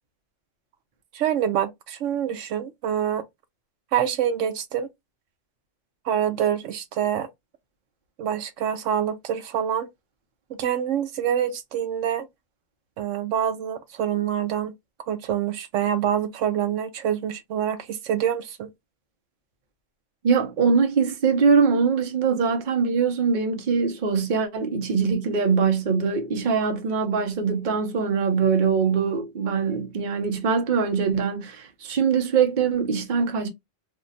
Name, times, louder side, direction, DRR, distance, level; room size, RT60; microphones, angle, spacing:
voice 1, 1.1-3.2 3.9-4.9 6.1-7.3 8.2-9.9 10.6-12.3 13.0-14.7 15.1-18.7, right 9 dB, 80° right, 0.9 m, -26 dB
voice 2, 20.2-33.5, right 5 dB, 45° right, 0.8 m, -22 dB
2.7 x 2.2 x 3.8 m
omnidirectional pair, 1.3 m